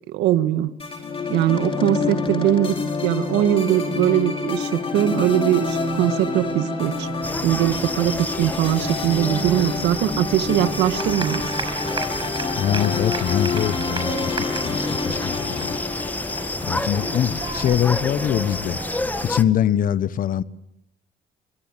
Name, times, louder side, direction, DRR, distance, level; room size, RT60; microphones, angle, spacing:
voice 1, 0.1-0.7 1.3-7.1 7.4-11.4, right 12 dB, 85° right, 1.8 m, -21 dB
sound 1, 0.8-18.2, left 4 dB, 30° left, 4.6 m, -28 dB
sound 2, 7.2-19.4, left 2 dB, 10° left, 1.6 m, -30 dB
sound 3, 10.9-19.3, right 4 dB, 30° right, 6.0 m, -34 dB
voice 2, 12.6-14.4 14.6-15.8 16.6-18.8 19.2-20.4, left 10 dB, 55° left, 1.2 m, -23 dB
24.5 x 23.0 x 7.6 m
cardioid pair, 110°, 17 cm